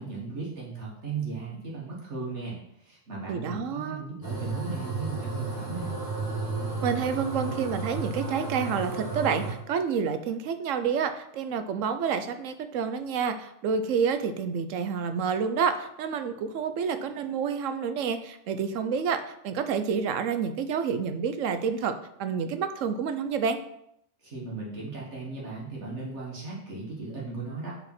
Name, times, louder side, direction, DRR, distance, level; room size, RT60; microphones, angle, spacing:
voice 1, 0.0-6.0 24.2-27.7, right 4 dB, 65° right, -5 dB, 1.8 m, -36 dB
voice 2, 3.3-4.0 6.8-21.9 22.2-23.6, right 6 dB, 85° right, 9 dB, 1.0 m, -29 dB
sound 1, 4.2-9.5, right 3 dB, 15° left, 2.3 m, -33 dB
5.1 x 4.8 x 5.8 m, 0.77 s
omnidirectional pair, 1.3 m